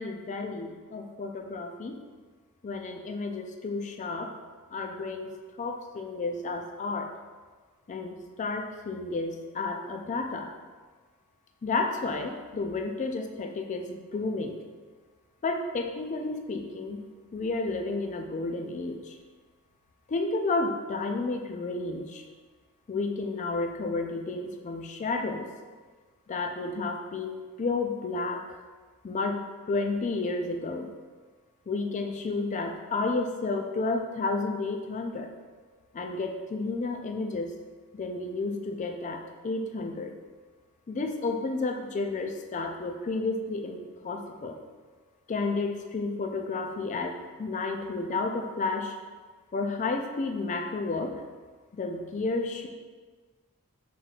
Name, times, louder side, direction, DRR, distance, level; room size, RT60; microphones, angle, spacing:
voice 1, 0.0-2.0 2.6-4.3 4.7-5.3 5.6-7.1 7.9-10.5 11.6-14.6 15.4-17.0 17.3-19.2 20.1-22.2 22.9-25.5 26.3-28.6 29.0-30.9 31.7-35.3 35.9-37.5 37.9-40.1 40.9-44.6 45.3-49.0 49.5-51.1 51.7-52.7, left 3 dB, 35° left, 4 dB, 0.3 m, -31 dB
5.8 x 3.0 x 2.4 m, 1.4 s
head